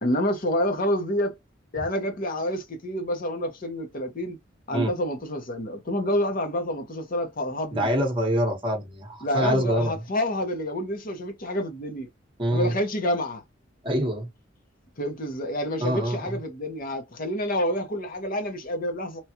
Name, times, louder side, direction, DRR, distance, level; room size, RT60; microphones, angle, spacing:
voice 1, 0.0-1.3 1.7-4.4 4.7-7.9 9.2-12.1 12.5-13.4 15.0-19.2, left 1 dB, 45° left, 0.9 m, -28 dB
voice 2, 7.7-9.9 12.4-12.7 13.8-14.3 15.8-16.4, equal, 25° right, 1.0 m, -25 dB
3.0 x 2.3 x 2.7 m
head